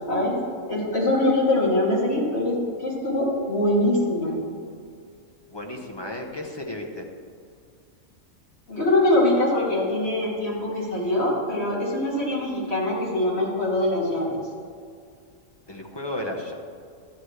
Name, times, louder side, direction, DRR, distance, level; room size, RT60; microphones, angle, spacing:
voice 1, 0.1-0.4 0.7-4.4 8.7-14.4, left 1 dB, 50° left, -5 dB, 2.8 m, -23 dB
voice 2, 5.5-7.0 15.7-16.5, left 1 dB, 20° left, 1 dB, 0.9 m, -33 dB
13.0 x 9.4 x 3.3 m, 2.2 s
omnidirectional pair, 1.4 m